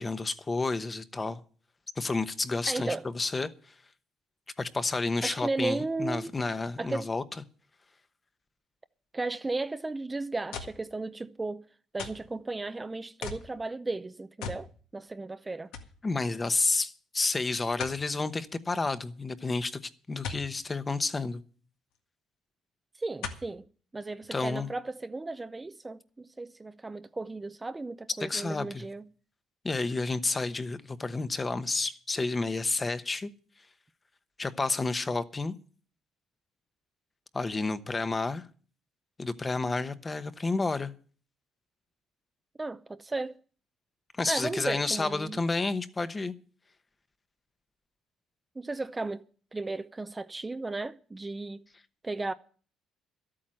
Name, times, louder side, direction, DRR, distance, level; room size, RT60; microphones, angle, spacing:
voice 1, 0.0-1.4 2.0-3.7 4.6-7.2 16.0-21.4 24.3-24.7 28.2-28.8 29.6-33.3 34.4-35.5 37.3-38.4 39.2-40.9 44.2-46.3, left 3 dB, 25° left, 0.9 m, -30 dB
voice 2, 2.7-3.1 5.2-6.3 6.8-7.1 9.1-11.7 11.9-15.7 23.0-23.7 23.9-29.1 42.6-43.4 44.3-45.4 48.6-49.2 49.5-51.6 52.0-52.3, right 3 dB, 15° right, 0.5 m, -35 dB
sound 1, 10.5-10.9 12.0-12.3 13.2-13.5 14.4-14.7 15.1-15.2 15.7-16.0 17.8-18.0 20.2-20.5 21.9-22.0 23.2-23.5 24.2-24.3, left 6 dB, 90° left, 1.8 m, -38 dB
12.5 x 8.7 x 7.6 m
cardioid pair, 105°, 0 cm